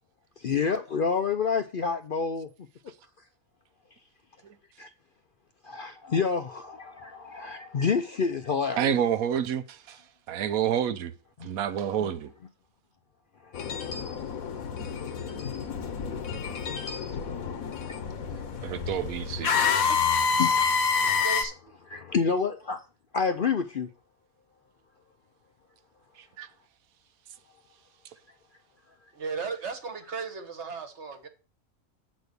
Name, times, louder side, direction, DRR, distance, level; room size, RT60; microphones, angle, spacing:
voice 1, 0.4-2.5 4.8-4.9 5.6-9.0 13.9-14.2 17.9-18.0 20.4-20.6 21.0-21.2 21.9-22.8 23.1-23.9, left 5 dB, 55° left, 0.6 m, -28 dB
voice 2, 8.8-10.0 10.3-11.1 11.4-12.3 18.6-19.5 26.4-26.5, right 9 dB, 80° right, 1.2 m, -28 dB
sound 1, 13.5-21.4, left 6 dB, 75° left, 1.4 m, -28 dB
voice 3, 21.0-21.5 29.1-31.3, right 5 dB, 55° right, 1.4 m, -36 dB
7.9 x 4.3 x 6.7 m
omnidirectional pair, 1.5 m